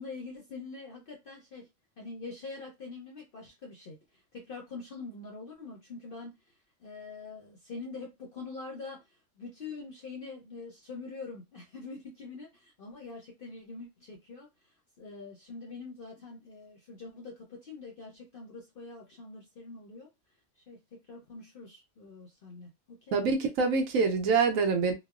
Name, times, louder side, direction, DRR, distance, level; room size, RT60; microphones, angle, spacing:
voice 1, 0.0-1.7 2.0-20.1 20.6-23.2, left 3 dB, 60° left, 0.5 m, -44 dB
voice 2, 23.1-24.9, right 4 dB, 75° right, 1.0 m, -25 dB
2.9 x 2.0 x 2.3 m
omnidirectional pair, 1.5 m